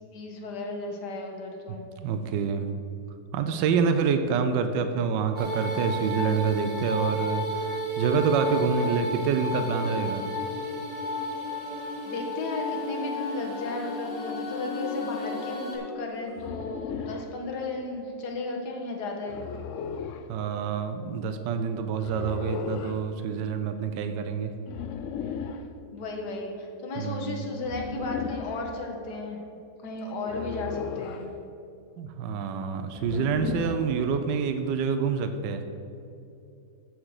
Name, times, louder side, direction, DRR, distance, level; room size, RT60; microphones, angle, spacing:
voice 1, 0.0-1.8 12.0-19.4 25.9-29.4 29.8-31.3, left 2 dB, 65° left, 1 dB, 1.9 m, -34 dB
voice 2, 2.0-2.7 3.3-10.2 20.3-24.5 27.0-27.4 32.0-35.6, right 6 dB, 75° right, 7 dB, 1.3 m, -27 dB
sound 1, 5.3-15.8, left 1 dB, 20° left, 2.3 m, -32 dB
sound 2, 9.2-12.2 13.4-15.4 15.7-16.5, right 1 dB, 30° right, 0.6 m, -49 dB
sound 3, 16.4-17.3 19.3-20.3 22.0-23.0 24.7-25.7 27.6-28.6 30.3-31.3 32.9-34.0, left 7 dB, 90° left, 0.6 m, -35 dB
13.5 x 5.1 x 6.5 m, 2.6 s
omnidirectional pair, 2.0 m